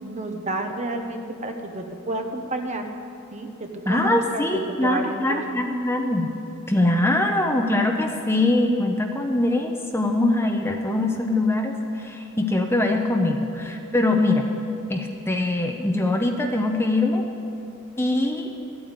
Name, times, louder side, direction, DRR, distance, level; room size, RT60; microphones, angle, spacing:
voice 1, 0.0-2.9 3.3-5.4, right 2 dB, 30° right, 5 dB, 1.0 m, -30 dB
voice 2, 3.9-6.3 6.7-14.5 14.9-17.2 18.0-18.5, left 2 dB, 10° left, 3 dB, 0.7 m, -22 dB
14.0 x 8.8 x 8.1 m, 2.6 s
head